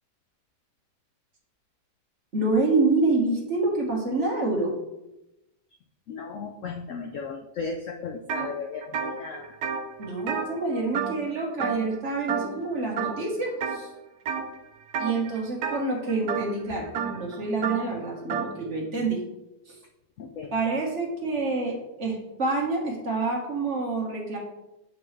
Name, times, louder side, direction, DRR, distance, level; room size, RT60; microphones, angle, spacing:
voice 1, 2.3-4.7 10.0-13.9 15.0-19.2 19.7-19.8 20.5-24.4, right 3 dB, 45° right, -1 dB, 1.7 m, -27 dB
voice 2, 6.1-9.5 20.2-20.5, left 5 dB, 70° left, 3 dB, 0.7 m, -35 dB
sound 1, 8.3-8.5 8.8-11.3 11.6-12.0 12.3-12.6 13.0-13.8 14.3-14.6 14.9-18.5, right 6 dB, 70° right, 1.1 m, -31 dB
7.6 x 5.3 x 3.2 m, 0.93 s
omnidirectional pair, 1.8 m